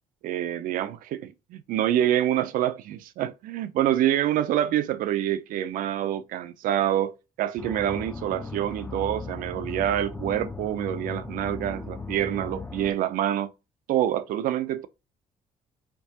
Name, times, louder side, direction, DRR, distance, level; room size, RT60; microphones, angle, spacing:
voice 1, 0.2-13.5 13.9-14.9, right 11 dB, 75° right, 0.6 m, -26 dB
sound 1, 7.6-12.9, left 3 dB, 10° left, 0.8 m, -37 dB
4.5 x 3.2 x 2.9 m
supercardioid pair, 80°, 14 cm